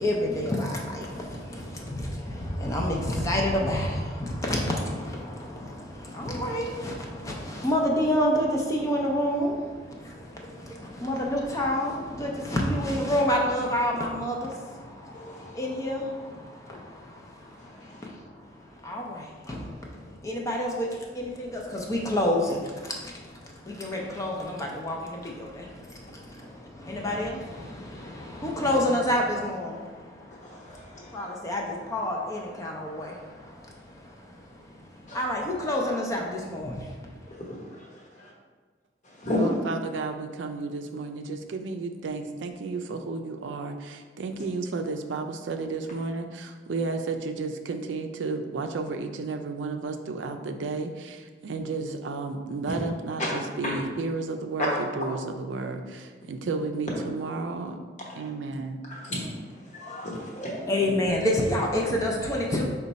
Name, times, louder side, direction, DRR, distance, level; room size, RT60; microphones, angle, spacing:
voice 1, 0.0-0.8 2.6-3.0 3.2-3.9 4.5-4.6 6.2-6.9 7.6-9.5 11.0-14.3 15.6-16.0 18.9-19.0 20.3-20.7 21.2-21.6 21.9-22.6 23.8-24.3 24.8-25.0 26.9-27.3 28.4-29.7 31.1-31.6 31.9-33.1 35.1-36.2 36.5-36.7 60.7-62.6, left 1 dB, 20° left, -1 dB, 0.4 m, -26 dB
voice 2, 30.4-31.3 35.1-35.2 37.3-37.5 39.2-39.4 53.2-53.3 59.0-59.3 59.7-60.6, left 1 dB, 40° left, -4 dB, 1.1 m, -33 dB
voice 3, 39.4-57.8 58.1-58.8, right 3 dB, 85° right, 5 dB, 0.4 m, -32 dB
5.1 x 2.2 x 4.0 m, 1.4 s
head